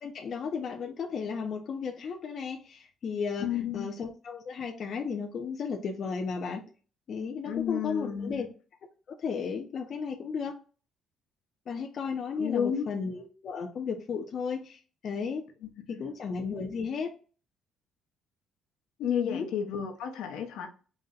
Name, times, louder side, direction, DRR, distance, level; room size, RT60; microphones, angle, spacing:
voice 1, 0.0-6.6 7.1-8.5 9.1-10.6 11.7-15.4 15.9-17.1 19.2-19.5, left 5 dB, 40° left, 0.5 m, -34 dB
voice 2, 3.4-3.9 7.4-8.5 12.3-12.8 15.9-16.1 19.0-20.7, left 8 dB, 80° left, 0.8 m, -31 dB
4.0 x 2.1 x 3.7 m
cardioid pair, 165°, 0 cm